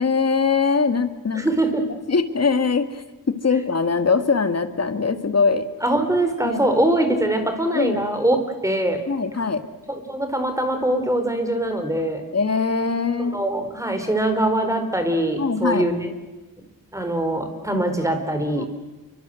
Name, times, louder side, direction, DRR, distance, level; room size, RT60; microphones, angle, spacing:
voice 1, 0.0-1.4 2.1-5.7 6.4-6.7 7.7-8.0 9.1-9.6 12.3-13.4 15.4-15.9 18.5-18.7, left 5 dB, 45° left, 8 dB, 2.2 m, -22 dB
voice 2, 1.4-1.8 5.8-8.4 8.6-9.0 9.9-12.2 13.3-16.1 16.9-18.7, right 1 dB, 10° right, 7 dB, 4.3 m, -22 dB
29.5 x 24.5 x 7.8 m, 1.1 s
wide cardioid pair, 150°, 36 cm